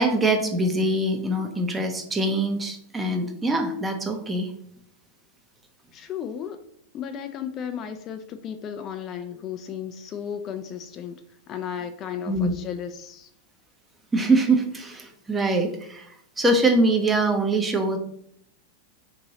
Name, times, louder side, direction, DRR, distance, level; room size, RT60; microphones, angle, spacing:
voice 1, 0.0-4.5 12.3-12.6 14.1-16.1 16.4-18.0, right 2 dB, 15° right, 4 dB, 0.6 m, -23 dB
voice 2, 5.9-6.6 6.9-11.1 11.5-13.3, left 8 dB, 40° left, 8 dB, 0.3 m, -34 dB
3.1 x 2.6 x 3.9 m, 0.69 s
hypercardioid pair, 110°, 0 cm